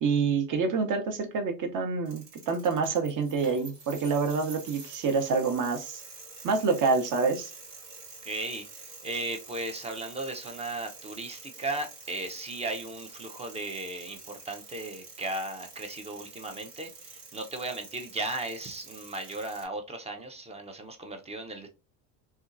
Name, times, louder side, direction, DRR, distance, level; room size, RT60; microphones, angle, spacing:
voice 1, 0.0-6.0 6.4-7.5, right 5 dB, 40° right, 0.8 m, -27 dB
sound 1, 2.1-19.7, right 4 dB, 85° right, 1.2 m, -48 dB
voice 2, 8.2-21.7, right 2 dB, 15° right, 0.4 m, -36 dB
2.7 x 2.3 x 2.4 m
hypercardioid pair, 80°, 48 cm